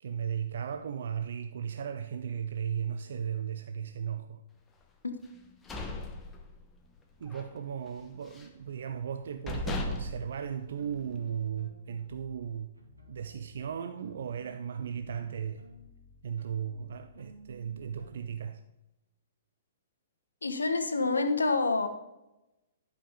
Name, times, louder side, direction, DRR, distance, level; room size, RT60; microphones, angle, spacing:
voice 1, 0.0-4.4 7.2-12.8 13.1-15.6 16.2-18.6, right 8 dB, 60° right, 0.4 m, -36 dB
sound 1, 5.3-6.9 7.3-7.5 7.9-8.6 9.1-9.2 9.5-11.3, left 2 dB, 15° left, 1.0 m, -37 dB
sound 2, 10.6-12.4 12.7-18.4, right 1 dB, 85° right, 2.2 m, -54 dB
voice 2, 20.4-21.9, left 3 dB, 80° left, 1.0 m, -27 dB
11.0 x 5.1 x 5.1 m
figure-of-eight pair, 115°, 0 cm